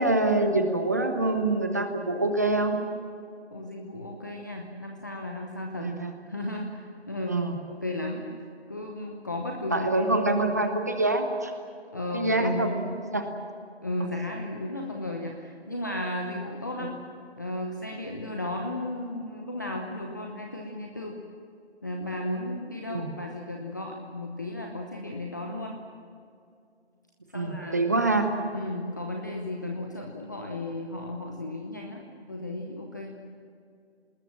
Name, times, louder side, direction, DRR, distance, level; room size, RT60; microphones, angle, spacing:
voice 1, 0.0-2.9 5.8-6.1 7.3-7.6 9.7-11.5 12.1-13.3 16.8-16.9 22.9-23.1 27.3-28.3, right 2 dB, 15° right, 6 dB, 0.9 m, -25 dB
voice 2, 3.5-5.9 6.3-7.4 7.7-8.3 8.7-10.0 11.9-12.7 13.8-16.9 17.4-21.2 21.8-25.8 27.3-27.8 28.5-32.0 32.3-33.2, left 1 dB, 15° left, 1 dB, 0.9 m, -34 dB
27.0 x 20.0 x 7.5 m, 2.4 s
figure-of-eight pair, 165°, 33 cm